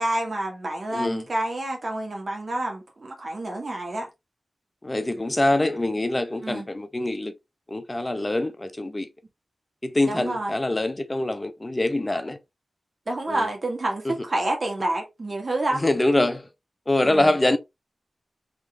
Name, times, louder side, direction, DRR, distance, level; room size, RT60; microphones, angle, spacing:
voice 1, 0.0-4.1 6.4-6.7 10.1-10.6 13.1-15.9 17.0-17.3, right 1 dB, 55° right, 1.9 m, -28 dB
voice 2, 0.9-1.2 4.8-7.3 7.7-9.1 9.8-12.4 13.3-13.5 15.8-16.5 16.9-17.6, left 1 dB, 30° left, 0.7 m, -24 dB
3.7 x 3.6 x 3.3 m
cardioid pair, 40°, 0 cm